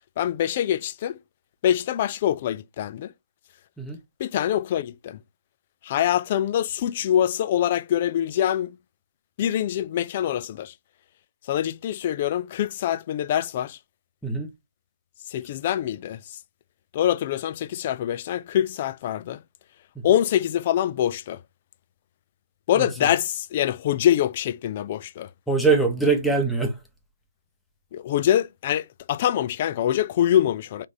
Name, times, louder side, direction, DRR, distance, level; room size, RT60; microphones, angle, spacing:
voice 1, 0.2-1.2 1.6-3.1 4.2-5.2 5.8-8.8 9.4-10.7 11.5-13.8 15.3-16.4 16.9-19.4 20.0-21.4 22.7-25.3 27.9-30.9, left 11 dB, 35° left, 0.3 m, -24 dB
voice 2, 25.5-26.7, right 4 dB, ahead, 0.9 m, -22 dB
3.4 x 2.6 x 4.1 m
figure-of-eight pair, 145°, 0 cm